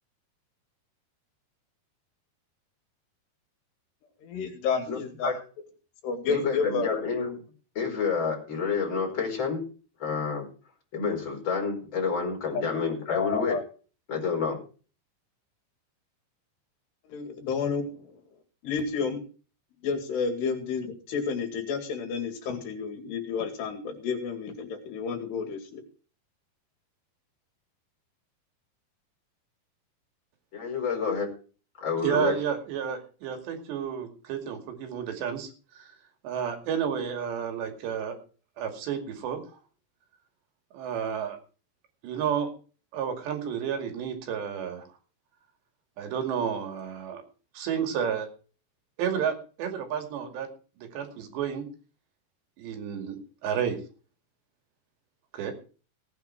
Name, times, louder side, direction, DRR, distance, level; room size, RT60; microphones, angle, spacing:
voice 1, 4.2-5.3 6.0-7.0 13.1-13.6 17.1-17.8 18.6-19.2 19.8-25.8, left 5 dB, 75° left, 6 dB, 4.3 m, -30 dB
voice 2, 4.9-5.3 6.3-7.4 7.7-9.6 10.0-10.5 10.9-13.6 14.1-14.6 30.5-31.3 31.8-32.4, left 5 dB, 25° left, 1 dB, 5.1 m, -29 dB
voice 3, 32.0-35.5 35.8-35.9 36.2-38.2 38.6-39.4 40.7-41.4 42.0-42.5 42.9-44.8 46.0-47.2 47.5-48.3 49.0-50.5 50.8-51.7 52.6-53.8 55.3-55.5, right 8 dB, 80° right, 5 dB, 4.5 m, -31 dB
17.5 x 9.4 x 4.6 m, 0.38 s
omnidirectional pair, 4.9 m